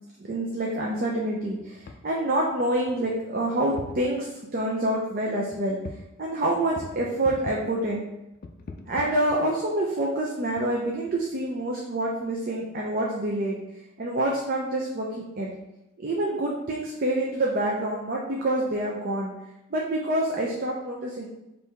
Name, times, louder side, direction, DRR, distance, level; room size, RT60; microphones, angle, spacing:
voice 1, 0.2-5.8 6.2-8.0 8.9-13.6 14.0-15.5 16.0-19.3 19.7-21.3, right 1 dB, 45° right, -2 dB, 0.5 m, -27 dB
sound 1, 1.6-2.0 2.5-2.6 2.9-3.4 3.7-4.1 5.5-6.1 6.4-7.7 8.3-9.7 10.5-11.4, left 3 dB, 45° left, 0.4 m, -42 dB
4.5 x 2.7 x 3.4 m, 0.92 s
head